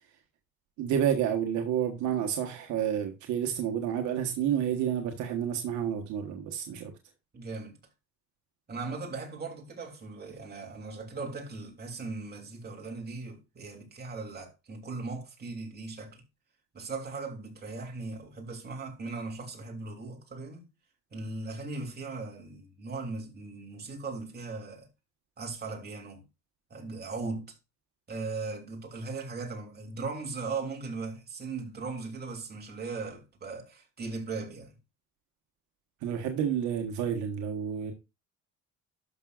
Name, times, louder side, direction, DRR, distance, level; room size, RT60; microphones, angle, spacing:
voice 1, 0.8-6.9 36.0-37.9, right 9 dB, 75° right, 1.4 m, -30 dB
voice 2, 7.3-7.8 8.7-16.2 16.7-20.7 21.1-24.9 25.4-26.2 26.7-27.5 28.1-34.8, right 3 dB, 35° right, 3.0 m, -38 dB
12.0 x 6.1 x 2.4 m
cardioid pair, 120°, 30 cm